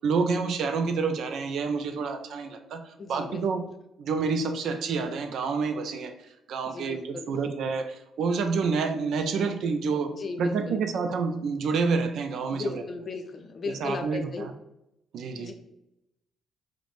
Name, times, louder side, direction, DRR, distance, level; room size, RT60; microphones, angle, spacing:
voice 1, 0.0-3.6 4.0-6.1 6.5-10.1 10.4-12.8 13.7-14.5 15.1-15.5, right 5 dB, 70° right, 7 dB, 0.3 m, -28 dB
voice 2, 3.0-3.4 6.7-7.3 10.1-10.8 12.5-14.5 15.4-15.5, left 4 dB, 45° left, 5 dB, 0.4 m, -36 dB
2.4 x 2.0 x 3.1 m, 0.83 s
supercardioid pair, 70°, 0 cm